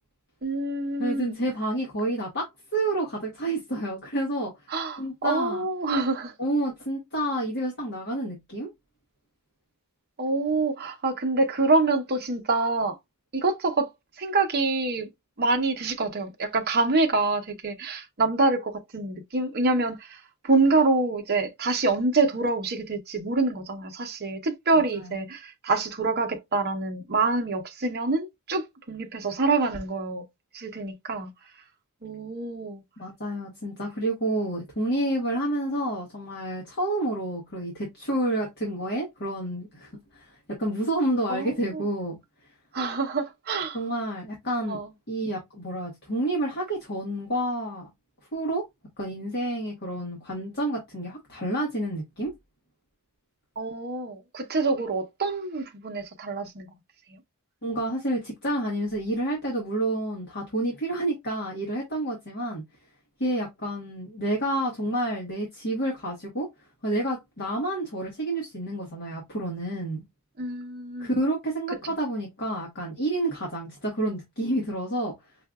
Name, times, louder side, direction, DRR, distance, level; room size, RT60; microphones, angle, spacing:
voice 1, 0.4-1.3 4.7-6.3 10.2-13.0 13.3-13.9 14.2-15.1 15.4-30.2 30.5-31.3 32.0-32.8 41.3-41.8 42.7-43.8 44.7-44.9 53.6-56.7 70.4-71.1, right 3 dB, 45° right, 0.8 m, -26 dB
voice 2, 1.0-4.5 5.0-5.6 6.4-8.7 24.7-25.1 33.0-42.2 43.7-44.8 45.1-47.9 48.3-48.7 49.0-52.3 57.6-62.6 63.2-66.5 66.8-70.0 71.0-75.1, right 1 dB, 50° left, 1.3 m, -29 dB
5.5 x 2.5 x 2.3 m
head